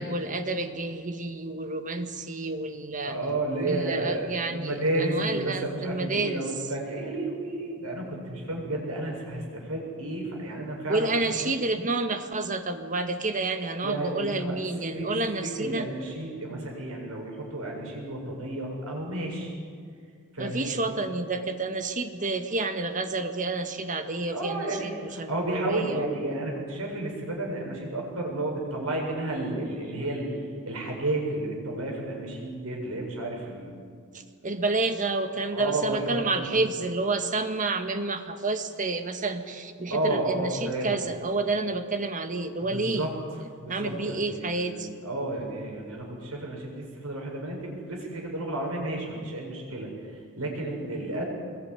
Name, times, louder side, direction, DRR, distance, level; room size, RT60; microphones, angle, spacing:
voice 1, 0.0-3.2 3.6-6.4 10.9-15.9 20.4-26.1 34.1-43.1 43.7-44.9, right 3 dB, 35° right, 7 dB, 1.7 m, -29 dB
voice 2, 3.0-11.5 13.8-19.5 20.3-20.9 24.3-33.8 35.5-36.5 39.9-41.0 42.7-43.1 43.6-51.2, right 2 dB, 75° right, 0 dB, 7.5 m, -32 dB
24.5 x 21.5 x 9.8 m, 2.1 s
head